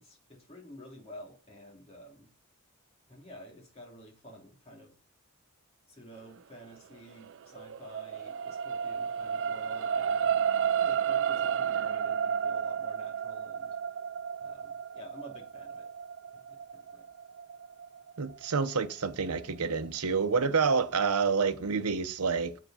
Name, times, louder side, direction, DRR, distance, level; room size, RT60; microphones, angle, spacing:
voice 1, 0.0-2.3 3.1-4.9 5.9-10.4 10.8-13.7 14.4-15.9 16.3-17.0, equal, 30° left, 2.8 m, -51 dB
sound 1, 7.1-19.6 20.2-20.3, right 7 dB, 55° right, 0.4 m, -32 dB
voice 2, 18.2-22.5, right 5 dB, 85° right, 0.9 m, -28 dB
7.7 x 4.9 x 5.7 m
head